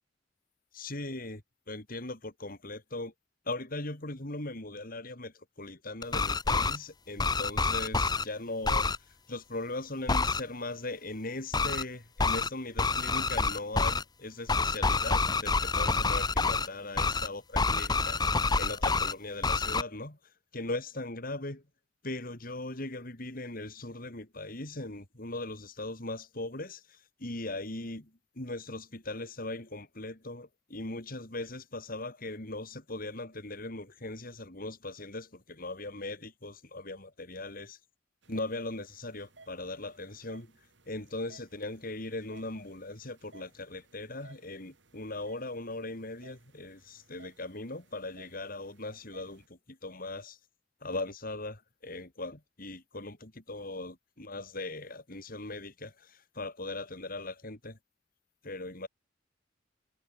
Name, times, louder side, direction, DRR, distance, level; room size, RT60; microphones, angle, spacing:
voice 1, 0.7-1.4 1.7-3.1 3.4-8.9 9.3-20.2 20.5-21.6 22.0-28.1 28.3-37.8 38.3-40.5 40.9-50.4 50.8-57.8 58.4-58.9, left 2 dB, 50° left, 3.3 m, -39 dB
sound 1, 6.0-6.8 7.2-8.2 8.6-9.0 10.1-10.4 11.5-11.8 12.2-12.5 12.8-14.0 14.5-16.7 17.0-17.3 17.5-19.1 19.4-19.8, left 4 dB, 20° left, 1.0 m, -27 dB
sound 2, 38.2-49.5, right 3 dB, 65° right, 6.2 m, -60 dB
head